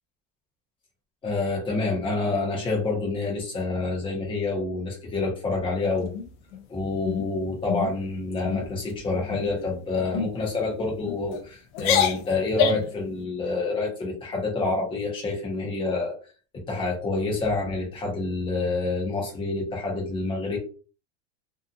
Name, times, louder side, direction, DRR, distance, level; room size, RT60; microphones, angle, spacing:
voice 1, 1.2-6.1 6.7-16.2 16.5-20.6, left 3 dB, 15° left, -1 dB, 0.8 m, -27 dB
sound 1, 6.0-6.6 7.0-7.3 7.7-7.9 8.3-8.7 9.3-9.6 10.1-10.3 11.0-11.4 11.7-13.0, left 8 dB, 60° left, 0.5 m, -27 dB
2.7 x 2.4 x 2.4 m, 0.38 s
supercardioid pair, 160°, 36 cm